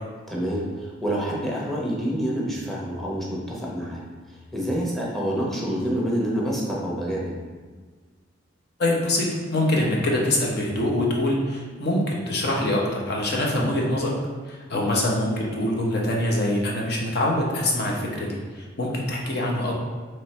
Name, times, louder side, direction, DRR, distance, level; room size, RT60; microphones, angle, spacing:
voice 1, 0.3-4.0 4.5-7.4 14.9-15.0, equal, ahead, -4 dB, 0.8 m, -27 dB
voice 2, 8.8-14.2 14.5-19.8, left 1 dB, 60° left, -2 dB, 0.8 m, -24 dB
4.3 x 3.1 x 3.2 m, 1.5 s
head